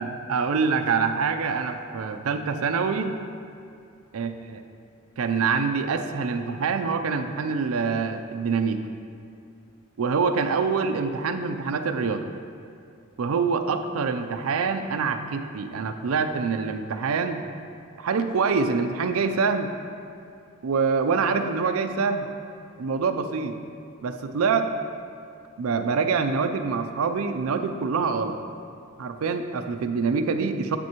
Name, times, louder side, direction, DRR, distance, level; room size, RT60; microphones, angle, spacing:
voice 1, 0.0-3.1 4.1-4.3 5.2-8.8 10.0-12.2 13.2-17.4 18.0-19.7 20.6-22.3 22.8-23.6 24.0-24.7 25.6-28.4 29.0-30.8, right 5 dB, 80° right, 8 dB, 0.4 m, -25 dB
8.2 x 6.1 x 2.9 m, 2.4 s
head